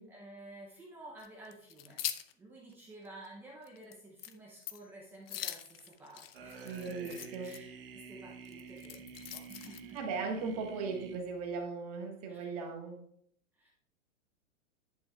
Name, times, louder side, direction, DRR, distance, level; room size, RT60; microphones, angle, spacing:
voice 1, 0.0-2.0 2.3-7.2 7.4-10.0 12.3-12.5 13.5-13.7, right 2 dB, 5° right, -4 dB, 0.6 m, -52 dB
sound 1, 1.2-2.3 2.7-2.8 3.3-3.4 3.6-3.9 4.2-4.4 4.6-4.9 5.3-7.6 8.4-10.0, left 11 dB, 50° left, 0.7 m, -42 dB
sound 2, 6.3-11.6, right 6 dB, 45° right, 1.0 m, -49 dB
voice 2, 6.6-7.6 9.9-13.0, right 4 dB, 30° right, 2 dB, 1.5 m, -38 dB
10.5 x 8.6 x 2.3 m, 0.66 s
supercardioid pair, 170°, 38 cm